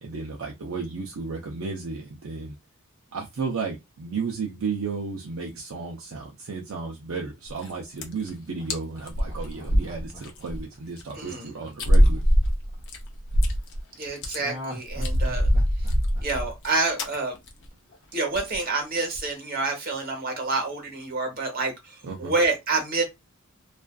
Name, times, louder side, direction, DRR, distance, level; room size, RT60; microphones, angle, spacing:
voice 1, 0.0-2.5 3.1-12.2 22.0-22.3, right 4 dB, 65° right, 0.5 m, -33 dB
sound 1, 7.5-7.7 8.0-8.3 8.7-8.8 9.1-10.6 11.0-11.1 11.8-13.8 14.1-14.4 14.9-16.7 17.0-17.2 17.5-17.7 17.9-18.0 18.4-18.6 19.0-19.3, equal, 55° left, 0.5 m, -23 dB
Laughter, 8.6-12.8 14.4-17.4 17.7-17.8, left 1 dB, 15° right, 0.9 m, -42 dB
voice 2, 11.1-11.5 14.0-15.5 16.2-17.4 18.1-23.0, right 3 dB, 45° right, 1.0 m, -28 dB
2.4 x 2.3 x 2.2 m
head